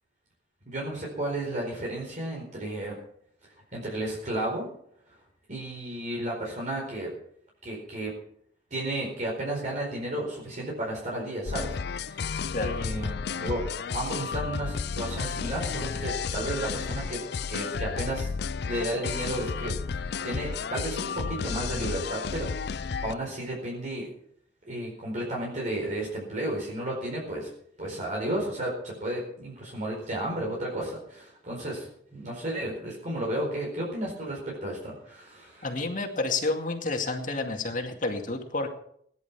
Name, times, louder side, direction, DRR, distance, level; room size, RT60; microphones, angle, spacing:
voice 1, 0.7-3.0 3.7-4.7 5.5-7.1 7.6-8.1 8.7-13.6 13.9-17.2 17.5-18.3 18.6-24.1 24.7-27.5 27.8-35.7, right 1 dB, 45° right, -3 dB, 4.6 m, -33 dB
sound 1, 11.5-23.1, left 5 dB, 65° left, 0.5 m, -32 dB
voice 2, 35.6-38.7, left 3 dB, 50° left, 4 dB, 2.2 m, -30 dB
18.0 x 11.0 x 5.9 m, 0.67 s
head